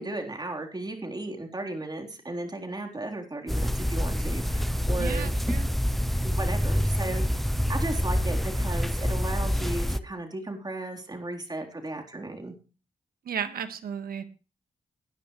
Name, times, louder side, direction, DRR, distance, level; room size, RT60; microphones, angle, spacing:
voice 1, 0.0-5.3 6.2-7.4 7.7-12.5, right 2 dB, 25° right, 2 dB, 3.9 m, -35 dB
sound 1, 3.5-10.0, equal, ahead, 0.7 m, -27 dB
voice 2, 5.0-5.7 13.3-14.2, right 7 dB, 80° right, 9 dB, 1.7 m, -34 dB
19.0 x 11.0 x 3.3 m, 0.33 s
cardioid pair, 60°, 15 cm